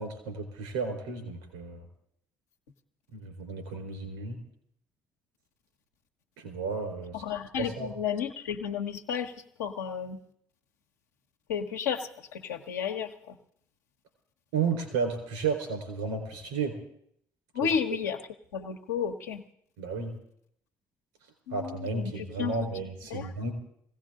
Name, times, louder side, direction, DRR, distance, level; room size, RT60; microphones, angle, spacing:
voice 1, 0.0-1.8 3.1-4.4 6.4-7.2 7.6-7.9 14.5-16.8 17.6-17.7 19.8-20.1 21.5-23.5, right 4 dB, 80° right, 4 dB, 4.1 m, -33 dB
voice 2, 7.1-9.3 9.6-10.2 11.5-13.4 17.5-18.2 18.5-19.4 21.5-22.7 23.1-23.3, left 7 dB, 85° left, 3 dB, 1.0 m, -32 dB
21.0 x 16.5 x 3.7 m, 0.70 s
hypercardioid pair, 50°, 9 cm